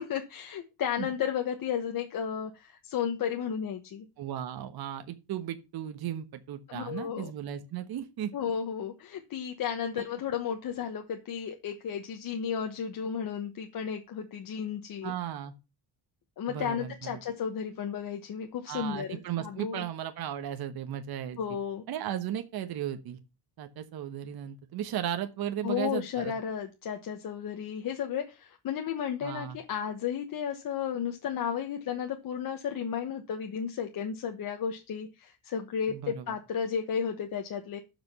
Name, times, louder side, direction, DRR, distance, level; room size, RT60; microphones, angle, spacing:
voice 1, 0.0-4.0 6.7-7.3 8.3-15.1 16.4-19.8 21.4-21.8 25.6-37.8, left 8 dB, 50° left, 1.2 m, -33 dB
voice 2, 4.2-8.3 15.0-15.5 16.5-17.2 18.7-21.4 21.9-23.2 23.6-26.3 29.2-29.6 35.9-36.4, right 10 dB, 60° right, 1.2 m, -35 dB
12.0 x 5.2 x 5.3 m
cardioid pair, 160°, 42 cm